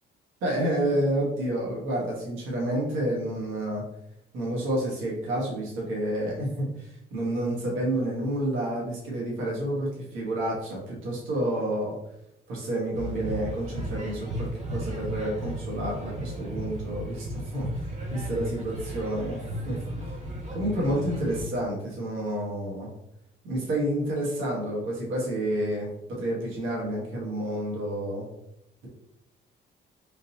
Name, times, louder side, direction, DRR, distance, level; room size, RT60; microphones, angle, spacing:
voice 1, 0.4-3.8 4.3-12.0 12.5-17.8 18.1-19.8 20.5-22.9 23.4-28.3, right 1 dB, 85° right, -3 dB, 1.3 m, -29 dB
sound 1, 12.9-21.4, right 1 dB, 35° right, 1.0 m, -35 dB
3.8 x 2.7 x 2.8 m, 0.82 s
cardioid pair, 90°, 20 cm